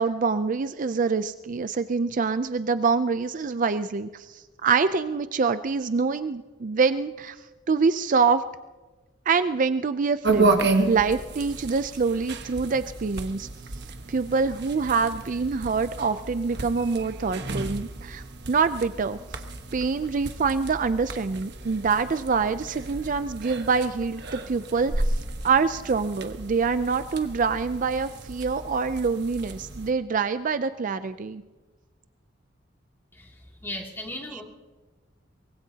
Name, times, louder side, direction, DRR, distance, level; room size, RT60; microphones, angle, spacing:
voice 1, 0.0-7.4 7.7-8.4 9.3-13.5 14.1-19.2 19.7-24.9 25.4-31.4 34.3-34.4, right 5 dB, 45° right, 12 dB, 0.4 m, -25 dB
sound 1, 10.2-29.9, right 3 dB, 60° right, 1.2 m, -32 dB
voice 2, 33.1-34.4, left 1 dB, 15° left, -2 dB, 2.6 m, -37 dB
24.0 x 21.5 x 2.8 m, 1.2 s
head